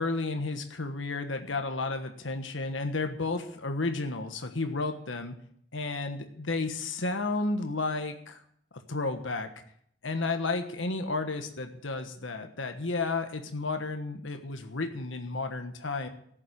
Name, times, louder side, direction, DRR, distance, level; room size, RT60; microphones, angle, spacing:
voice 1, 0.0-5.3 5.7-8.4 8.9-9.5 10.0-16.1, left 3 dB, 90° left, 6 dB, 1.3 m, -32 dB
14.0 x 7.6 x 8.8 m, 0.67 s
head